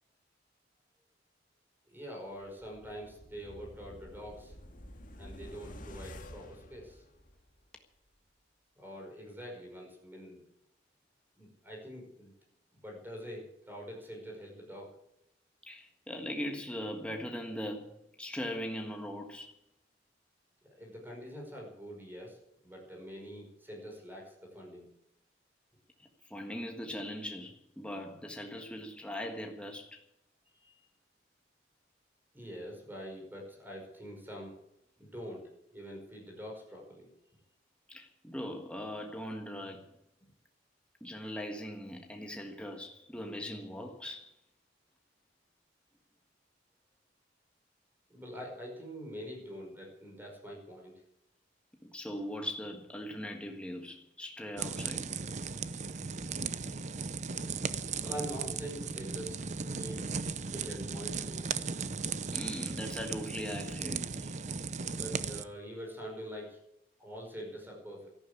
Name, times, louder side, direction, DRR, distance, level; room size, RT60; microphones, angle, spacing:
voice 1, 1.9-4.5 5.1-7.0 8.8-10.4 11.4-12.3 12.8-15.0 20.6-22.4 22.6-24.9 30.6-30.7 32.3-34.6 35.0-37.1 40.2-40.3 48.1-51.0 58.0-59.4 59.7-60.1 60.5-61.4 64.9-66.6 67.0-68.1, equal, 10° right, 5.4 m, -45 dB
sound 1, 2.4-7.6 8.0-8.1, left 1 dB, 50° left, 2.1 m, -50 dB
voice 2, 15.6-17.9 18.2-19.5 26.0-30.0 37.9-39.8 41.0-44.3 51.8-55.2 62.3-64.3, equal, 5° left, 1.5 m, -40 dB
sound 2, 54.6-65.4, right 5 dB, 40° right, 0.7 m, -37 dB
13.5 x 12.0 x 8.4 m
head